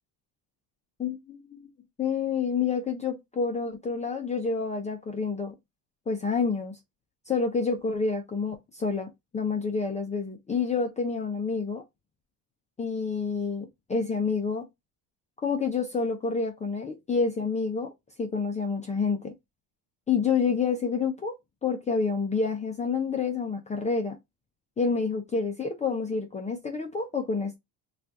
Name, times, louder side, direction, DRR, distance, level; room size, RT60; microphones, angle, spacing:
voice 1, 1.0-1.6 2.0-5.5 6.1-6.7 7.3-11.8 12.8-14.7 15.4-17.9 18.2-19.3 20.1-21.3 21.6-24.2 24.8-27.6, left 5 dB, 20° left, 0.4 m, -28 dB
2.7 x 2.4 x 3.3 m
cardioid pair, 130°, 41 cm